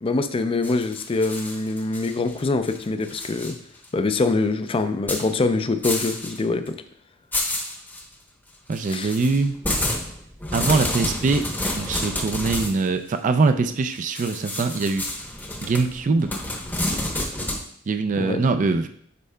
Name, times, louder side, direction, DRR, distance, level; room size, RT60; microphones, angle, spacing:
voice 1, 0.0-3.6 3.9-6.7 8.9-9.1 18.2-18.4, left 3 dB, 25° left, 9 dB, 0.4 m, -24 dB
sound 1, 0.6-2.4 2.7-3.5 3.8-3.9 5.1-5.3 5.8-6.4 6.7-6.8 7.3-8.0 8.7-12.8 14.2-17.6, left 1 dB, 10° left, 0.8 m, -29 dB
voice 2, 8.7-9.6 10.5-11.5 11.8-15.1 15.6-16.3 17.9-18.9, right 4 dB, 40° right, 8 dB, 0.3 m, -22 dB
8.2 x 5.3 x 2.2 m, 0.63 s
head